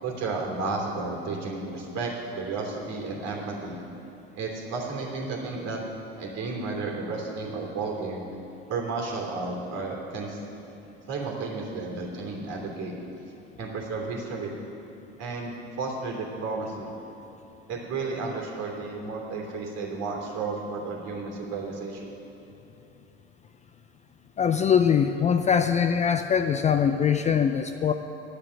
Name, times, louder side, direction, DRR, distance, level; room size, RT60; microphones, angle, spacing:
voice 1, 0.0-3.8 4.4-5.8 6.2-8.2 8.7-10.4 11.1-12.9 13.6-14.5 15.2-16.9 17.7-22.1, right 3 dB, 50° right, -1 dB, 2.9 m, -32 dB
voice 2, 24.4-27.9, left 7 dB, 20° left, 8 dB, 0.4 m, -22 dB
10.0 x 6.8 x 9.0 m, 3.0 s
hypercardioid pair, 80°, 33 cm